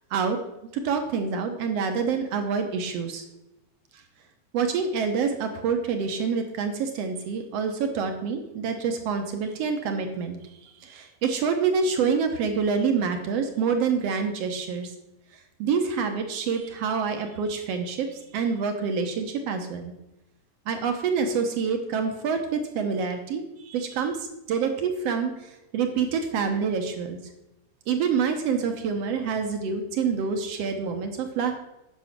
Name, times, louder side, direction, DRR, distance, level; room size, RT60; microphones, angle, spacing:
voice 1, 0.7-3.2 3.9-4.0 4.5-14.9 15.6-19.9 20.7-27.2 27.9-31.6, right 5 dB, 65° right, 6 dB, 1.7 m, -27 dB
9.4 x 6.3 x 6.0 m, 0.95 s
omnidirectional pair, 3.7 m